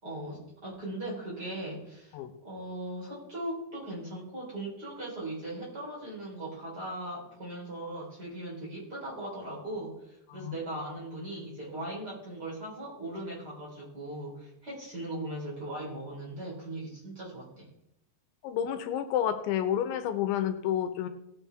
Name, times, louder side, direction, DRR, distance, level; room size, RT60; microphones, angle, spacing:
voice 1, 0.0-2.2 2.4-17.7, right 1 dB, 25° right, -5 dB, 3.9 m, -39 dB
voice 2, 18.4-21.1, left 10 dB, 85° left, 8 dB, 3.2 m, -30 dB
17.5 x 7.9 x 3.5 m, 0.80 s
omnidirectional pair, 5.3 m